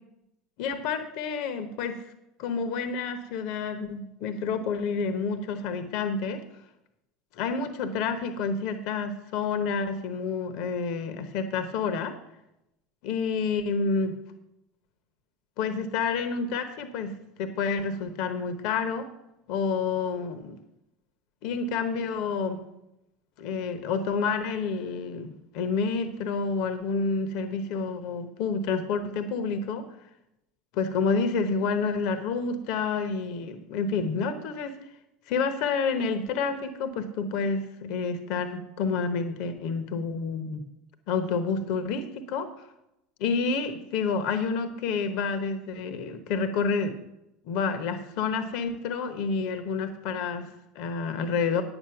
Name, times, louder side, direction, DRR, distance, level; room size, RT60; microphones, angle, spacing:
voice 1, 0.6-2.0 2.4-6.4 7.3-12.2 13.0-14.2 15.6-19.1 19.5-20.6 21.4-22.6 23.4-29.9 30.7-34.8 35.3-40.7 41.1-42.5 43.2-47.0 47.4-51.6, left 5 dB, 60° left, 9 dB, 1.0 m, -29 dB
9.6 x 8.0 x 5.8 m, 0.87 s
hypercardioid pair, 80°, 0 cm